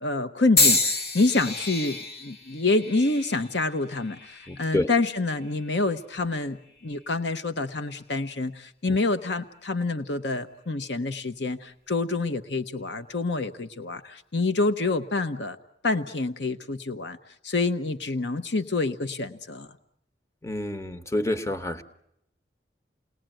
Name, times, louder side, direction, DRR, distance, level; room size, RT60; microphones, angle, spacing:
voice 1, 0.0-15.6 15.8-17.2 17.4-19.7, left 3 dB, 75° left, 10 dB, 1.0 m, -27 dB
sound 1, 0.6-4.7 5.4-5.8 6.8-7.0, left 3 dB, 55° left, 1.8 m, -28 dB
voice 2, 4.5-4.9 20.4-21.8, left 1 dB, 15° left, 10 dB, 1.1 m, -28 dB
29.0 x 20.0 x 9.0 m, 0.78 s
head